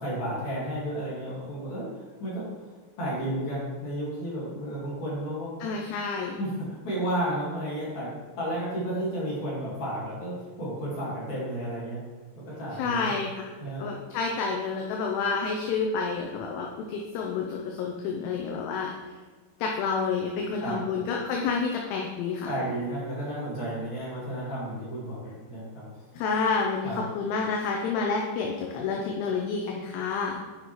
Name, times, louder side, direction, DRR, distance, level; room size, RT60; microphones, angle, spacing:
voice 1, 0.0-2.6 3.0-5.6 6.4-6.5 6.8-12.0 12.5-13.2 13.6-13.9 20.6-21.0 22.5-26.0 26.8-27.0, right 1 dB, 50° left, -8 dB, 2.7 m, -32 dB
voice 2, 5.6-6.4 12.8-13.5 13.8-18.9 19.6-22.5 26.1-30.4, left 5 dB, 80° left, 0 dB, 2.6 m, -29 dB
8.6 x 5.3 x 3.1 m, 1.4 s
omnidirectional pair, 5.1 m